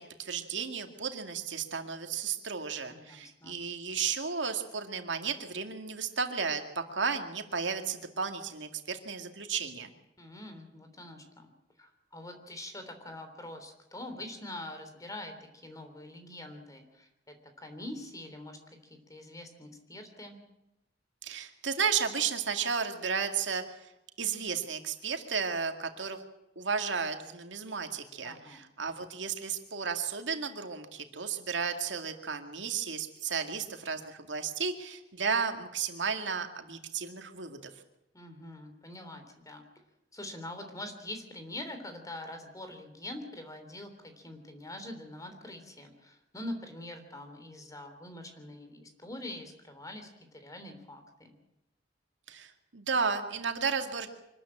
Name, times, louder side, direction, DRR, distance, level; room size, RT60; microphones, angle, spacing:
voice 1, 0.0-9.9 21.2-23.6 24.2-26.2 26.6-37.7 52.3-54.1, right 6 dB, 80° right, 5 dB, 2.2 m, -33 dB
voice 2, 2.9-3.6 10.2-11.5 11.8-20.4 28.2-28.6 38.1-39.6 40.1-51.3, left 1 dB, 20° left, 6 dB, 3.4 m, -44 dB
25.0 x 13.5 x 8.8 m, 0.88 s
head